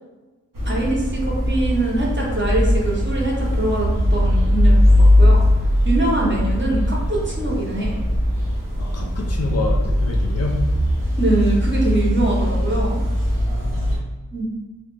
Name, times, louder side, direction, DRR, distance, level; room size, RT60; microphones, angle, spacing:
sound 1, 0.5-14.0, left 1 dB, 85° right, 0.7 m, -19 dB
voice 1, 0.6-5.4 5.8-8.0 11.2-13.0 14.3-14.5, right 2 dB, 35° right, -4 dB, 0.7 m, -23 dB
voice 2, 8.8-10.6 13.3-14.0, left 3 dB, 50° left, 0 dB, 0.5 m, -28 dB
2.3 x 2.1 x 3.1 m, 1.2 s
wide cardioid pair, 50°, 32 cm